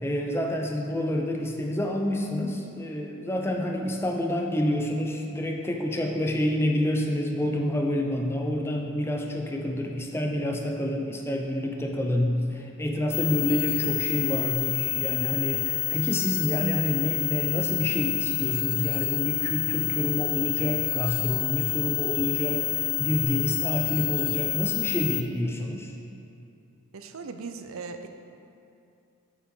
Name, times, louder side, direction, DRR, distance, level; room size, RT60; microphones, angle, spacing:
voice 1, 0.0-25.9, left 1 dB, 10° left, 1 dB, 0.5 m, -28 dB
sound 1, 13.1-25.2, left 13 dB, 80° left, 0.5 m, -28 dB
voice 2, 26.9-28.1, right 4 dB, 85° right, 7 dB, 0.5 m, -38 dB
8.7 x 7.4 x 3.7 m, 2.7 s
head